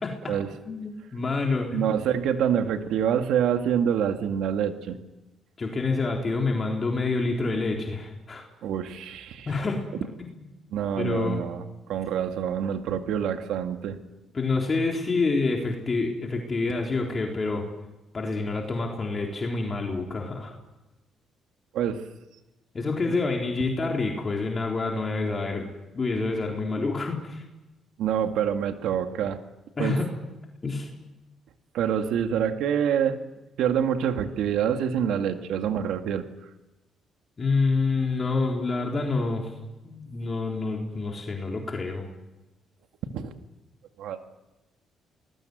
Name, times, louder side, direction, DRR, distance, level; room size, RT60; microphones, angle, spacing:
voice 1, 0.0-0.4 0.7-1.8 5.6-8.4 9.5-9.8 10.2-10.3 11.0-11.4 14.3-17.7 18.1-20.5 22.7-25.7 25.9-27.4 29.8-30.1 30.6-30.9 37.4-39.5 39.8-42.0, left 3 dB, 35° left, 0 dB, 3.9 m, -27 dB
voice 2, 1.7-5.0 8.6-9.5 10.7-11.6 11.9-14.0 21.7-22.0 23.1-23.2 28.0-29.4 29.8-30.0 31.7-33.2 33.6-36.3 43.1-43.3 44.0-44.2, right 8 dB, 85° right, 7 dB, 2.0 m, -26 dB
27.5 x 20.5 x 8.0 m, 1.0 s
cardioid pair, 90°, 0 cm